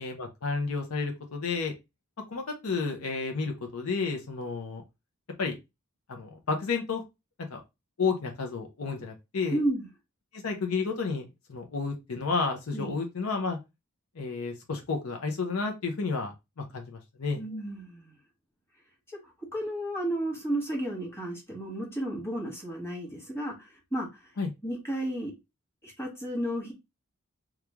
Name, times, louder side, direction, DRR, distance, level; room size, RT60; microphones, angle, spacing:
voice 1, 0.0-1.7 2.3-4.8 5.4-5.6 6.1-7.0 7.5-7.6 8.0-9.6 10.3-13.6 14.2-17.4 24.4-24.5, left 4 dB, 85° left, 0.7 m, -31 dB
voice 2, 9.5-9.9 12.7-12.9 17.3-18.2 19.2-24.3 24.6-25.3 25.8-26.7, right 1 dB, 10° left, 1.3 m, -33 dB
3.1 x 2.4 x 3.4 m
head